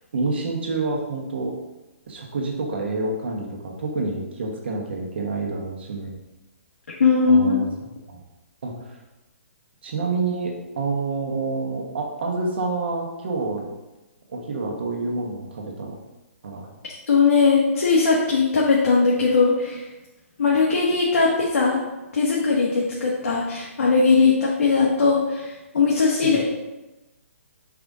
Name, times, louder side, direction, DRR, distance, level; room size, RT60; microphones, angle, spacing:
voice 1, 0.1-1.5 2.1-6.2 7.2-7.7 8.1-8.2 8.6-9.0 9.8-13.7 14.3-16.0 16.4-16.7 26.2-26.4, right 3 dB, 45° right, 1 dB, 1.1 m, -28 dB
voice 2, 7.0-7.6 17.1-19.9 20.4-21.8 22.1-26.4, left 4 dB, 85° left, -4 dB, 1.3 m, -19 dB
5.3 x 4.9 x 3.6 m, 1.1 s
hypercardioid pair, 175°, 8 cm